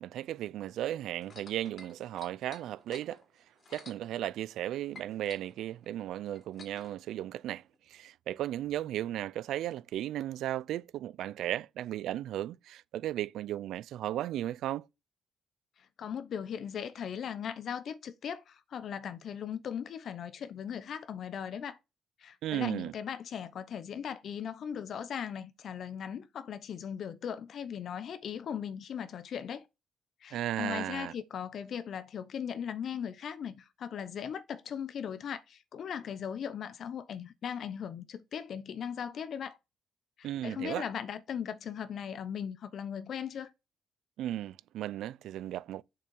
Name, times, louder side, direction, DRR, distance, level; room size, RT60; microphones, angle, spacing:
voice 1, 0.0-3.2 3.7-14.9 22.4-22.9 30.3-31.1 40.2-40.9 44.2-45.8, right 12 dB, 80° right, 0.4 m, -35 dB
sound 1, 1.2-4.7 4.9-7.0 7.7-7.8, left 4 dB, 45° left, 3.0 m, -52 dB
voice 2, 16.0-21.8 22.2-29.6 30.2-39.6 40.2-43.5, left 8 dB, 65° left, 0.8 m, -38 dB
7.0 x 5.4 x 7.0 m
cardioid pair, 90°, 0 cm